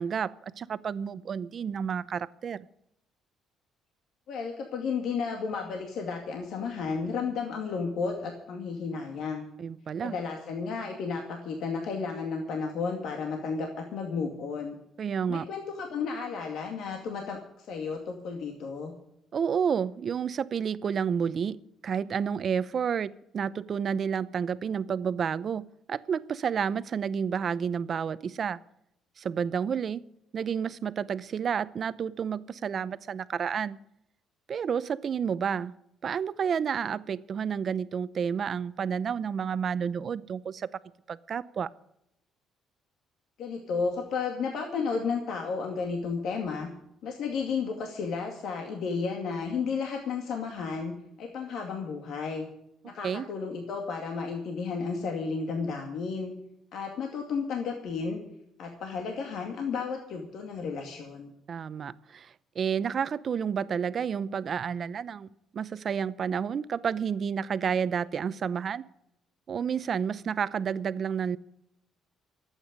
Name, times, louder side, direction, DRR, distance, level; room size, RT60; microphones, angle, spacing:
voice 1, 0.0-2.7 9.6-10.2 15.0-15.5 19.3-28.6 29.2-30.1 30.3-33.8 34.5-35.7 36.0-40.7 41.1-41.7 53.0-53.3 61.5-65.3 65.5-68.8 69.5-71.4, right 7 dB, 50° right, 0.7 m, -30 dB
voice 2, 4.3-9.5 10.0-14.8 15.3-18.9 43.4-46.7 47.0-52.5 52.8-56.3 56.7-58.2 58.6-61.3, left 5 dB, 70° left, 2.3 m, -33 dB
24.0 x 9.1 x 5.3 m
cardioid pair, 95°, 0 cm